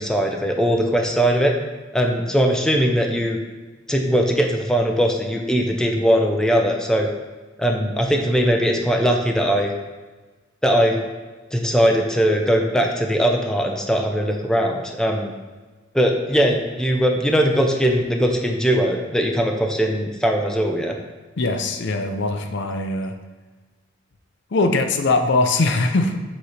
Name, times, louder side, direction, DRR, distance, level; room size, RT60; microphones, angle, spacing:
voice 1, 0.0-1.5 1.9-3.4 3.9-7.1 7.6-9.7 10.6-11.0 11.5-15.3 15.9-21.0, equal, 5° left, 2 dB, 0.5 m, -20 dB
voice 2, 21.4-23.1 24.5-26.2, left 2 dB, 60° left, 6 dB, 0.6 m, -21 dB
6.8 x 3.1 x 4.9 m, 1.3 s
head